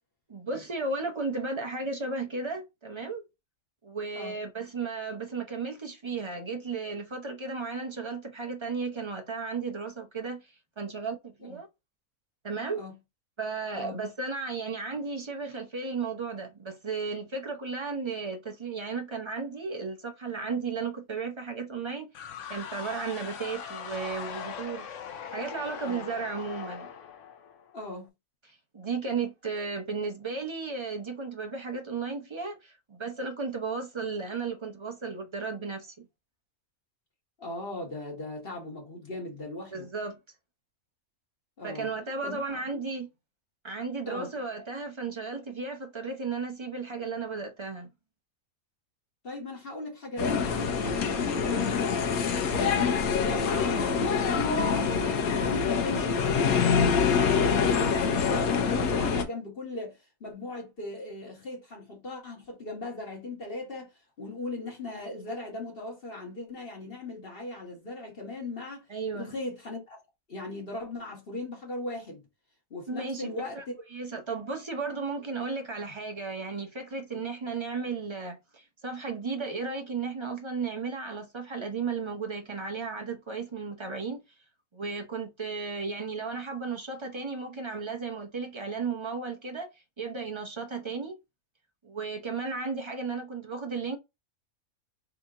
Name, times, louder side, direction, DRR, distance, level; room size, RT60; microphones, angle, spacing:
voice 1, 0.3-3.2 3.8-11.7 12.4-12.8 13.4-22.1 22.5-24.8 25.3-26.9 28.7-36.0 39.7-40.2 41.6-43.1 43.6-47.9 68.9-69.3 72.9-73.6 73.9-84.2 84.7-89.7 90.0-91.1 91.8-94.0, right 4 dB, 35° right, 0.4 m, -34 dB
sound 1, 22.1-27.9, left 7 dB, 65° left, 0.9 m, -41 dB
voice 2, 27.7-28.1 37.4-39.9 41.6-41.9 42.2-42.6 44.1-44.3 49.2-54.9 55.4-63.9 64.2-68.9 69.1-70.0 70.3-72.2 72.7-73.7, left 2 dB, 40° left, 1.5 m, -38 dB
sound 2, 50.2-59.2, left 6 dB, 80° left, 1.3 m, -25 dB
3.5 x 2.8 x 3.7 m
omnidirectional pair, 1.5 m